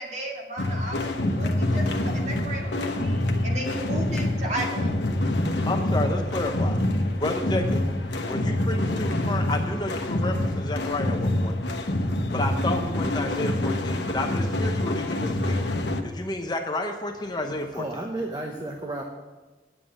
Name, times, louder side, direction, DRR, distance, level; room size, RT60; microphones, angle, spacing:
voice 1, 0.0-5.0, right 1 dB, 40° right, -1 dB, 2.1 m, -34 dB
sound 1, 0.6-16.0, left 1 dB, 85° left, 1.0 m, -26 dB
voice 2, 5.7-6.8 7.2-7.9 8.2-11.6 12.3-15.6 16.0-17.8, left 1 dB, 25° left, 4 dB, 0.8 m, -31 dB
voice 3, 17.1-19.0, right 2 dB, 25° right, 2 dB, 0.9 m, -34 dB
9.8 x 7.5 x 7.5 m, 1.2 s
head